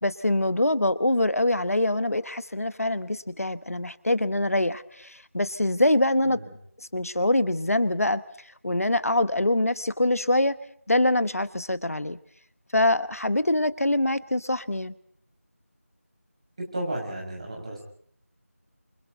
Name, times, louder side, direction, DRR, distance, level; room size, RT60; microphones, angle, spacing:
voice 1, 0.0-6.4 6.9-8.2 8.6-10.5 10.9-12.2 12.7-14.9, left 1 dB, 70° left, 14 dB, 1.2 m, -24 dB
voice 2, 16.6-17.8, right 1 dB, 20° right, -1 dB, 5.7 m, -33 dB
30.0 x 28.0 x 4.0 m, 0.62 s
figure-of-eight pair, 175°, 8 cm